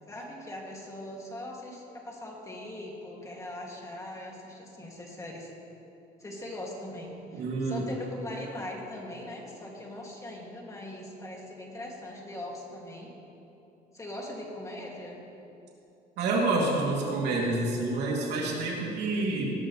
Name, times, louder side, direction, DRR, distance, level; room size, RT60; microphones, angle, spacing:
voice 1, 0.1-5.5 6.2-13.1 13.9-15.2, left 1 dB, 20° left, -2 dB, 2.6 m, -41 dB
voice 2, 7.3-7.8 16.2-19.4, right 2 dB, 80° right, -3 dB, 3.1 m, -28 dB
19.5 x 11.5 x 3.4 m, 2.8 s
cardioid pair, 110°, 17 cm